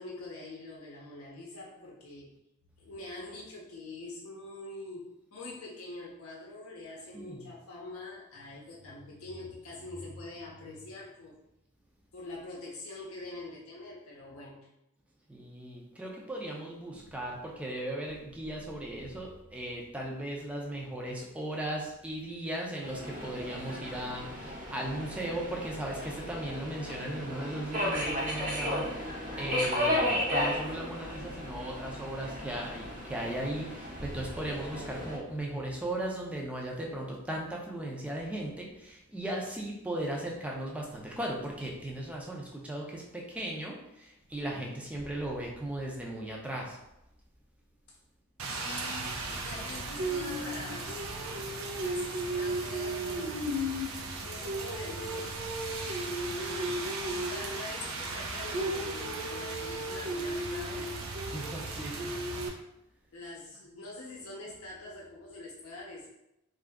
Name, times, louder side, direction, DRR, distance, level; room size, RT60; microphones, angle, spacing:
voice 1, 0.0-2.3 2.8-11.4 12.1-14.7 48.5-51.0 51.8-53.5 54.1-55.4 55.9-61.0 63.1-66.1, left 2 dB, 75° left, -3 dB, 0.6 m, -44 dB
voice 2, 7.1-7.5 15.3-46.8 61.3-62.1, right 1 dB, 5° right, -2 dB, 0.5 m, -37 dB
Subway metro underground, 22.8-35.2, left 1 dB, 35° right, 0.8 m, -34 dB
Rain, 48.4-62.5, right 2 dB, 70° right, 0.5 m, -35 dB
2.7 x 2.5 x 3.4 m, 0.86 s
head